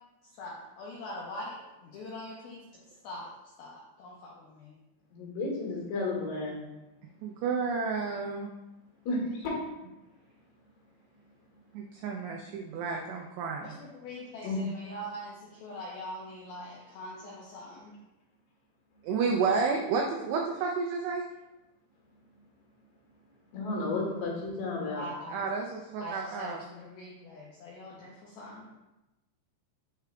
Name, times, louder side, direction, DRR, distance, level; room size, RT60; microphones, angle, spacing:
voice 1, 0.4-2.6 3.0-3.3 3.6-4.8 13.6-17.9 24.9-25.5 26.0-28.7, left 1 dB, 85° left, -5 dB, 2.2 m, -43 dB
voice 2, 5.1-6.6 9.1-9.5 14.4-14.6 23.5-25.0, left 2 dB, 65° left, -3 dB, 3.3 m, -32 dB
voice 3, 7.2-8.5 11.7-13.8 19.0-21.2 25.3-26.6, right 5 dB, 90° right, 0 dB, 2.4 m, -31 dB
9.5 x 4.6 x 2.3 m, 0.98 s
omnidirectional pair, 5.6 m